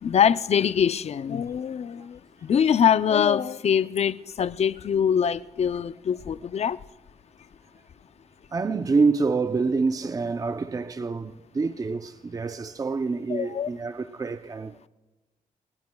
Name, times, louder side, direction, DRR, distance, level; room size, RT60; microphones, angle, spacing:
voice 1, 0.0-6.8 13.3-13.7, left 8 dB, 45° left, 0.5 m, -23 dB
voice 2, 8.5-14.9, right 4 dB, 25° right, 0.6 m, -27 dB
28.5 x 20.0 x 2.3 m
cardioid pair, 120°, 15 cm